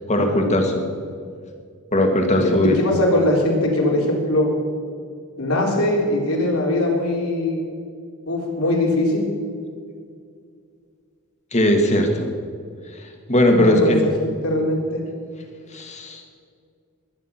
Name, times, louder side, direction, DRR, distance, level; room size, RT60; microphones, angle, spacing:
voice 1, 0.1-0.8 1.9-2.8 11.5-12.3 13.3-14.0 15.7-16.2, left 1 dB, 30° left, 3 dB, 2.0 m, -18 dB
voice 2, 2.3-4.5 5.4-7.6 8.3-9.3 13.5-13.9 14.2-15.0, left 1 dB, 75° left, -1 dB, 3.9 m, -21 dB
21.5 x 10.0 x 6.0 m, 2.2 s
head